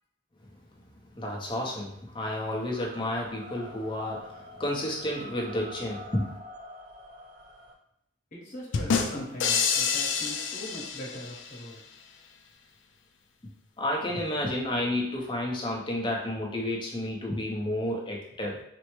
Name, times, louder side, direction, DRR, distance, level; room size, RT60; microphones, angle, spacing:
voice 1, 1.1-6.3 13.8-18.6, left 1 dB, 25° left, -2 dB, 0.6 m, -31 dB
sound 1, 2.7-7.7, equal, 50° right, 0.6 m, -46 dB
voice 2, 8.3-11.8, equal, 40° left, -4 dB, 1.0 m, -40 dB
sound 2, 8.7-11.6, left 6 dB, 70° left, 0.4 m, -28 dB
4.2 x 2.0 x 3.0 m, 0.77 s
head